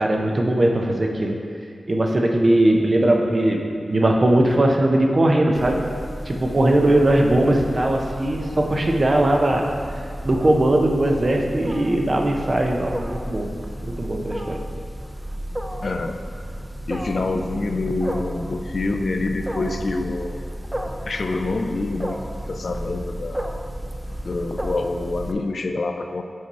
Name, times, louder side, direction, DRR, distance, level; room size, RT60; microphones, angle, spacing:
voice 1, 0.0-1.4 1.9-5.8 6.3-9.6 10.2-13.5 13.8-14.6, right 1 dB, 45° right, 2 dB, 0.7 m, -19 dB
Wild animals, 5.5-25.3, equal, 10° right, 0.5 m, -33 dB
voice 2, 15.8-16.2 16.9-20.4 21.1-22.2 22.5-23.5 24.2-26.2, left 3 dB, 65° left, 6 dB, 0.4 m, -26 dB
6.5 x 4.7 x 4.2 m, 2.2 s
wide cardioid pair, 70°, 0 cm